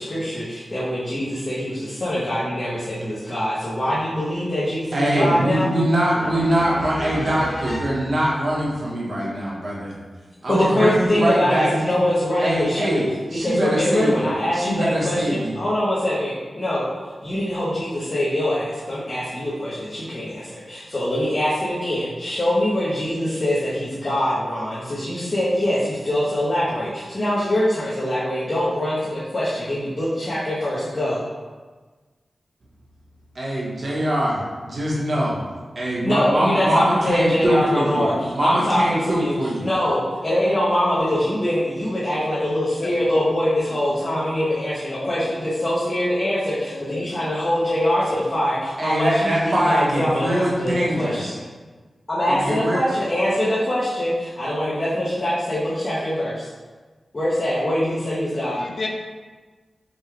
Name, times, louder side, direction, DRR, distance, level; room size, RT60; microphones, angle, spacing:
voice 1, 0.0-5.7 6.1-8.0 10.5-13.0 13.3-16.8 17.2-31.2 36.0-51.4 52.1-56.5 57.1-58.6, left 1 dB, 40° left, -9 dB, 0.9 m, -23 dB
voice 2, 4.9-10.0 10.4-11.7 12.4-15.5 33.3-35.4 35.7-39.7 48.8-51.4 52.3-52.8, right 1 dB, 55° right, -5 dB, 1.1 m, -23 dB
voice 3, 42.8-43.2 43.7-43.8 44.9-45.3 46.7-47.1 58.6-58.9, left 3 dB, 60° left, 2 dB, 0.5 m, -32 dB
5.2 x 2.3 x 3.2 m, 1.4 s
wide cardioid pair, 90°, 0 cm